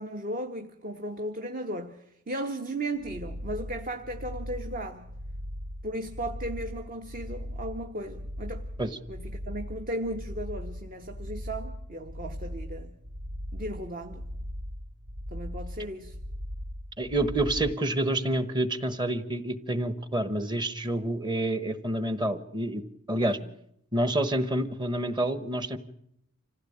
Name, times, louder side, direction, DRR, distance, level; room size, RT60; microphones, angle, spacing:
voice 1, 0.0-5.1 5.8-8.6 9.1-13.0 13.5-14.4 15.3-16.2 23.4-23.5, right 1 dB, 40° right, 5 dB, 1.3 m, -36 dB
sound 1, 3.0-17.8, equal, 65° right, 1.6 m, -39 dB
voice 2, 17.0-22.8 23.1-23.4 23.9-25.8, right 1 dB, 20° right, 13 dB, 1.2 m, -28 dB
26.0 x 16.0 x 8.7 m, 0.76 s
head